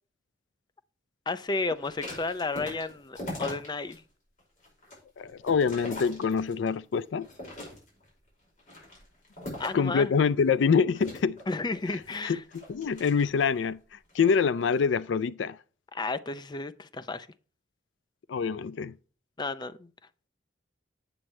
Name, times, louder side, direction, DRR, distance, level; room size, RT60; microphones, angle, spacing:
voice 1, 1.3-4.0 9.6-10.1 11.5-12.4 15.9-17.3 19.4-19.9, left 3 dB, 25° left, 0.5 m, -32 dB
sound 1, 1.7-4.0 4.4-6.7 7.2-8.1 8.6-9.9 10.9-13.6 14.1-14.4, left 1 dB, 45° left, 5.2 m, -41 dB
voice 2, 5.2-7.3 9.7-11.4 11.9-15.6 18.3-18.9, left 6 dB, 75° left, 0.4 m, -26 dB
8.8 x 7.5 x 3.2 m
head